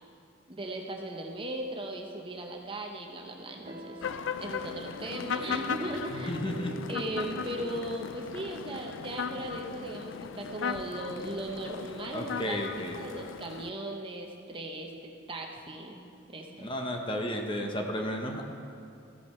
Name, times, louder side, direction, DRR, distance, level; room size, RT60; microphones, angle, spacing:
voice 1, 0.5-4.1 4.4-6.3 6.9-12.6 12.9-16.0 16.3-16.7, right 1 dB, 25° right, 2 dB, 0.8 m, -38 dB
sound 1, 3.6-9.8, right 1 dB, 50° right, 1.7 m, -46 dB
sound 2, 4.0-13.7, left 6 dB, 65° left, 0.4 m, -37 dB
voice 2, 6.1-6.8 12.1-13.0 16.6-18.4, equal, 25° left, 2 dB, 0.9 m, -33 dB
14.5 x 7.6 x 4.3 m, 2.5 s
head